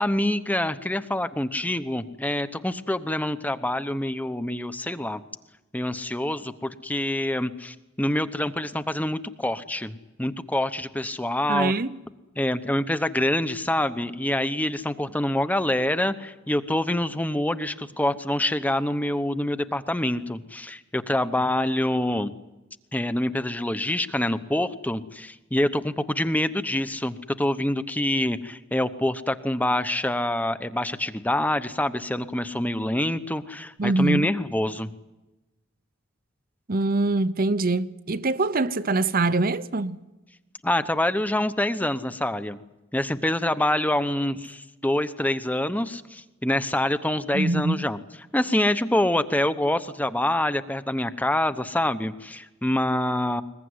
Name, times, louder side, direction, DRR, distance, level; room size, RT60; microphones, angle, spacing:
voice 1, 0.0-5.2 5.7-11.7 12.4-22.3 22.9-34.9 40.6-42.6 42.9-48.0 48.3-53.4, left 1 dB, 10° left, 0.9 m, -26 dB
voice 2, 11.5-12.0 33.8-34.3 36.7-40.0 47.3-47.9, right 2 dB, 45° right, 0.8 m, -24 dB
21.5 x 21.0 x 9.6 m
head